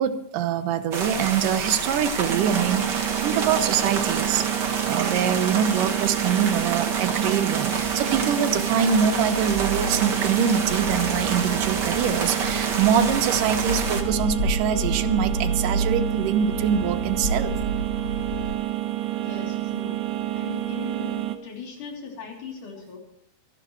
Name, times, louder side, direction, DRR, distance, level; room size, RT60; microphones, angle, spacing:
voice 1, 0.0-4.4 4.8-17.6, right 8 dB, 85° right, 11 dB, 2.6 m, -24 dB
sound 1, 0.9-14.0, right 4 dB, 40° right, 1.8 m, -29 dB
sound 2, 1.0-18.6, right 1 dB, 50° left, 3.2 m, -33 dB
sound 3, 2.3-21.4, right 15 dB, 70° right, 2.1 m, -29 dB
voice 2, 19.2-20.0 20.3-23.0, left 5 dB, 70° left, 0 dB, 4.8 m, -39 dB
25.0 x 11.0 x 3.2 m, 0.76 s
omnidirectional pair, 3.7 m